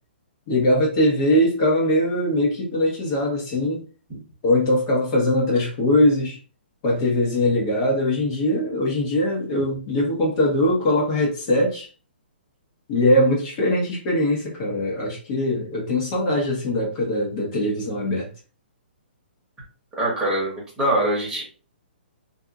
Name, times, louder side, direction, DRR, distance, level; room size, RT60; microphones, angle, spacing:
voice 1, 0.5-3.8 4.4-6.4 6.8-11.9 12.9-18.3, left 1 dB, 35° left, 1.1 m, -21 dB
voice 2, 20.0-21.4, right 1 dB, 10° right, 1.1 m, -23 dB
2.6 x 2.5 x 2.4 m
hypercardioid pair, 155°, 6 cm